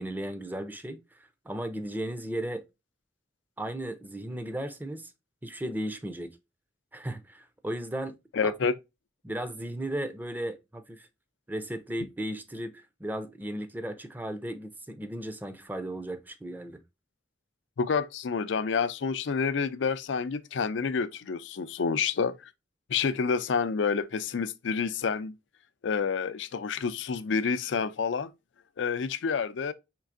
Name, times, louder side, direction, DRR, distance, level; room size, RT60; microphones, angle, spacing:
voice 1, 0.0-2.6 3.6-5.1 5.4-6.4 6.9-8.1 8.4-8.5 9.2-11.1 11.5-12.7 13.0-16.8, right 1 dB, 10° right, 0.5 m, -35 dB
voice 2, 8.3-8.7 17.8-22.4 22.9-25.3 25.8-28.3 28.8-29.7, left 5 dB, 80° left, 0.4 m, -28 dB
4.5 x 3.2 x 2.5 m
head